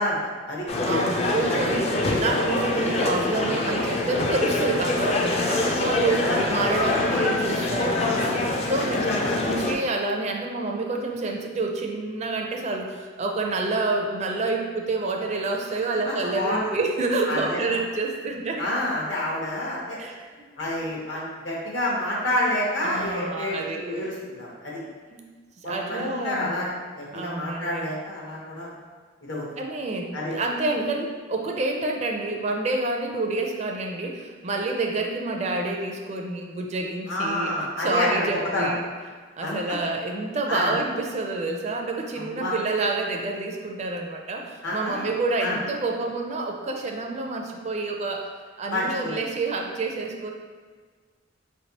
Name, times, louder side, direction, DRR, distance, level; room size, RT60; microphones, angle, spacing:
voice 1, 0.0-0.7 1.5-1.6 5.7-6.5 7.1-7.3 8.8-9.4 16.0-16.8 17.3-17.6 18.6-20.0 20.6-24.8 25.6-28.7 29.2-29.4 30.1-30.3 37.1-38.7 39.4-39.8 40.5-40.7 42.1-42.6 44.6-45.1 45.4-45.6 48.7-49.1, left 1 dB, 70° left, -4 dB, 1.1 m, -29 dB
sound 1, 0.7-9.7, left 2 dB, 35° left, 0.4 m, -25 dB
voice 2, 0.8-1.9 2.2-6.2 6.5-9.1 9.4-18.6 20.0-20.5 22.8-24.0 24.3-24.4 25.1-25.2 25.6-26.5 27.1-27.9 29.6-38.9 39.4-48.3 48.6-50.3, right 2 dB, 35° right, 1 dB, 0.4 m, -28 dB
4.6 x 3.2 x 2.8 m, 1.5 s
head